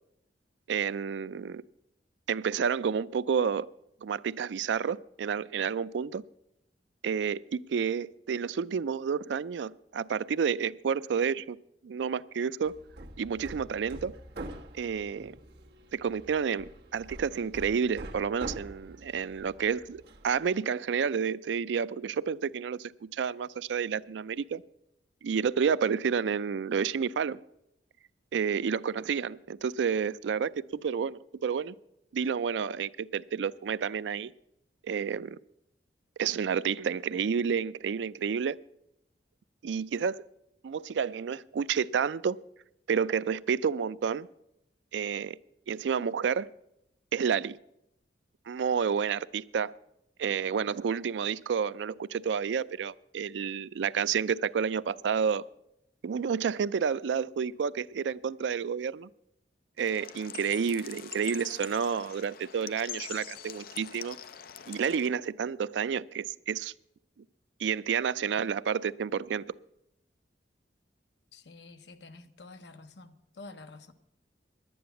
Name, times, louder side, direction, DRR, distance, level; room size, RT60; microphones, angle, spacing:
voice 1, 0.7-1.6 2.3-3.7 4.0-6.2 7.0-11.6 11.8-12.8 13.2-14.1 14.7-15.4 15.9-24.6 25.2-27.4 28.3-31.7 32.1-34.3 34.8-35.4 36.2-38.6 39.6-40.2 40.6-42.4 42.9-44.3 44.9-45.4 45.7-46.5 47.1-47.6 48.5-49.7 50.2-55.4 56.0-59.1 59.8-64.2 64.7-66.7 67.6-69.5, right 6 dB, 85° right, 0.4 m, -30 dB
Hammer, 12.6-20.5, right 1 dB, 65° right, 1.2 m, -45 dB
sound 1, 59.8-65.1, left 10 dB, 55° left, 0.5 m, -44 dB
voice 2, 71.3-73.9, left 3 dB, 75° left, 0.9 m, -49 dB
11.0 x 9.4 x 6.9 m
head